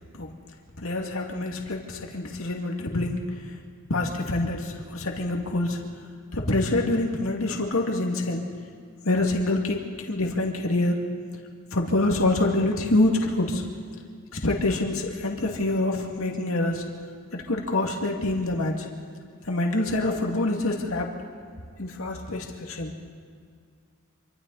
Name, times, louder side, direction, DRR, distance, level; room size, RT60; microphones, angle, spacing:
voice 1, 0.8-3.2 3.9-5.8 6.3-8.4 9.0-9.8 10.0-11.0 11.7-13.6 14.4-16.8 17.3-18.8 19.5-21.1 21.8-22.9, left 2 dB, 80° left, 1 dB, 2.4 m, -26 dB
26.5 x 25.0 x 4.2 m, 2.1 s
head